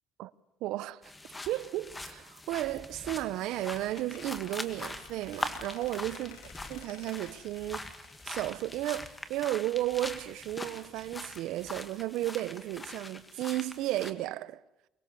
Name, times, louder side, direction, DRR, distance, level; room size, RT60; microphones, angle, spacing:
voice 1, 0.6-1.0 1.5-6.4 6.7-7.9 8.2-14.6, right 15 dB, 80° right, 0.8 m, -34 dB
sound 1, 1.0-14.1, left 2 dB, 15° left, 1.8 m, -43 dB
Squeak, 3.4-9.2, left 10 dB, 85° left, 1.7 m, -54 dB
23.5 x 20.5 x 6.9 m
cardioid pair, 120°, 0 cm